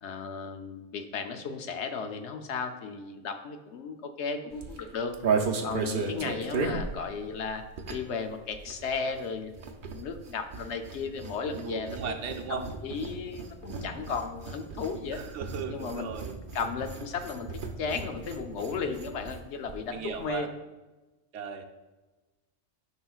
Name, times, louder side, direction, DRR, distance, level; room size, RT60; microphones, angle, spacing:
voice 1, 0.0-5.1 5.6-7.6 7.9-9.5 9.9-15.2 15.7-16.2 16.5-17.5 17.8-20.5, left 5 dB, 70° left, 6 dB, 0.9 m, -35 dB
sound 1, 4.5-8.2 8.5-19.4 19.7-19.8 20.0-20.3, right 4 dB, 50° right, 0.7 m, -35 dB
voice 2, 11.6-12.6 15.1-16.3 19.9-20.5 21.3-21.6, right 6 dB, 80° right, 4 dB, 1.0 m, -37 dB
9.5 x 5.5 x 2.4 m, 1.2 s
omnidirectional pair, 1.2 m